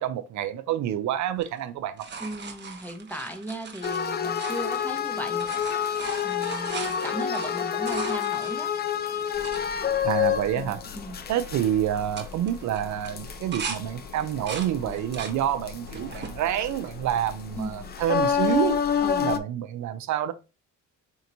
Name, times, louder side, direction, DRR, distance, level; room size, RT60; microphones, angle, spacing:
voice 1, 0.0-2.1 10.0-10.8 11.3-18.8 19.2-20.3, right 11 dB, 70° right, 0.5 m, -28 dB
sound 1, 1.3-5.0 5.3-9.6 10.2-10.3 10.5-11.0 11.2-11.6 12.0-13.8 14.2-15.4 15.9-16.4 17.0-17.7 19.3-19.4, right 5 dB, 35° right, 0.8 m, -39 dB
voice 2, 2.2-5.5 6.2-8.7 10.6-11.2 17.6-17.9 19.0-19.4, right 1 dB, 5° left, 0.7 m, -36 dB
sound 2, 3.8-15.4 15.7-19.4, left 8 dB, 35° left, 0.4 m, -29 dB
sound 3, 9.3-19.3, left 5 dB, 85° left, 2.1 m, -44 dB
4.4 x 2.9 x 2.5 m
cardioid pair, 90°, 30 cm